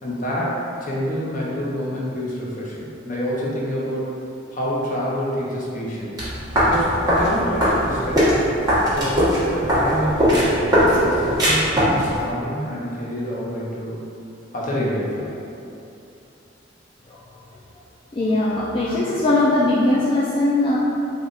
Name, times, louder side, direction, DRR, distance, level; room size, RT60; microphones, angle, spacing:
voice 1, 0.0-4.1 4.5-6.1 6.6-8.3 8.9-10.5 11.0-14.0 14.5-15.3, equal, 45° left, -6 dB, 0.8 m, -27 dB
sound 1, 6.2-12.2, equal, 20° right, 1.1 m, -20 dB
voice 2, 18.1-20.8, left 2 dB, 30° left, -7 dB, 0.3 m, -20 dB
3.5 x 2.3 x 3.9 m, 2.7 s
head